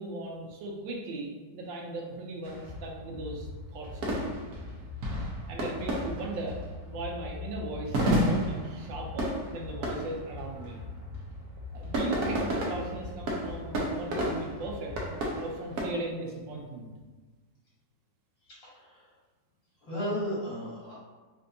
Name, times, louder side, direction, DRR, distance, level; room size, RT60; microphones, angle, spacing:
voice 1, 0.0-4.3 5.5-10.8 11.7-14.9 15.4-16.9, right 2 dB, 80° right, 0 dB, 1.4 m, -38 dB
sound 1, 2.4-15.8, equal, 60° right, 1.1 m, -33 dB
voice 2, 18.6-19.0 19.8-21.0, equal, 80° left, -8 dB, 2.4 m, -34 dB
4.4 x 2.5 x 2.6 m, 1.3 s
omnidirectional pair, 2.0 m